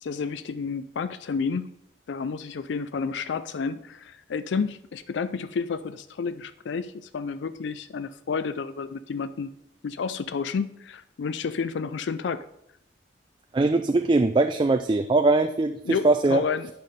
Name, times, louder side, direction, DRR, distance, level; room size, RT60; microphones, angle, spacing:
voice 1, 0.0-1.7 2.1-9.5 9.8-12.4 15.9-16.7, left 5 dB, 75° left, 13 dB, 0.4 m, -30 dB
voice 2, 13.5-16.4, right 2 dB, 25° right, 8 dB, 0.3 m, -21 dB
9.5 x 5.7 x 5.1 m, 0.78 s
head